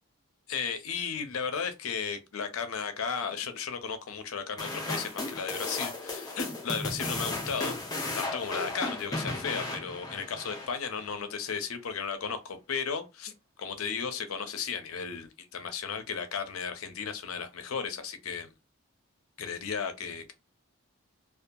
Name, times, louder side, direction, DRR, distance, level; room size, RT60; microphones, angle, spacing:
voice 1, 0.5-7.8 8.1-18.5 19.4-20.3, left 6 dB, 80° left, 0.5 m, -35 dB
sound 1, 4.6-11.1, left 2 dB, 15° left, 0.4 m, -35 dB
2.7 x 2.3 x 2.2 m
head